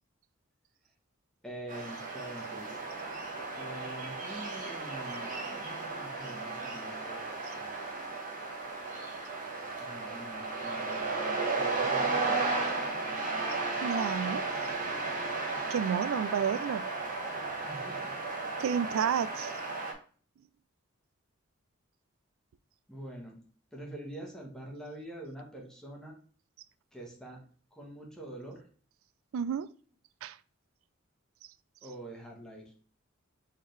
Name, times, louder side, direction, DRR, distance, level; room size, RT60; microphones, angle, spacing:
voice 1, 1.4-2.7 3.5-8.0 9.8-11.1 11.5-12.8 17.6-18.2 22.9-23.4 23.7-26.1 26.9-27.4 27.8-28.6 31.8-32.7, right 1 dB, 5° left, 1.1 m, -45 dB
sound 1, 1.7-19.9, right 3 dB, 40° right, 1.0 m, -34 dB
voice 2, 13.8-14.4 15.7-16.9 18.6-19.5 29.3-29.7 30.2-30.4, right 7 dB, 75° right, 0.3 m, -30 dB
4.5 x 3.5 x 3.2 m
head